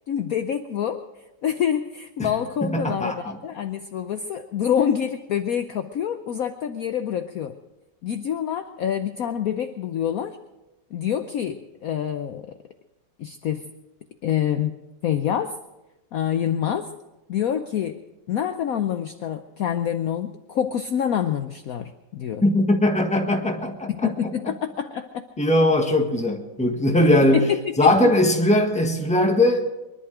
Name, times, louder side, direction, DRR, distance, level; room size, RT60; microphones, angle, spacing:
voice 1, 0.1-1.0 1.4-7.6 8.0-10.4 10.9-12.5 13.2-13.7 14.2-14.7 15.0-15.5 16.1-16.9 17.3-18.0 18.3-22.4 23.9-25.2 27.3-27.9, left 9 dB, 70° left, 8 dB, 0.8 m, -26 dB
voice 2, 2.6-3.4 22.4-24.1 25.4-27.4 27.8-29.6, left 1 dB, 5° left, 2 dB, 1.2 m, -20 dB
23.5 x 11.0 x 5.0 m, 1.0 s
omnidirectional pair, 2.3 m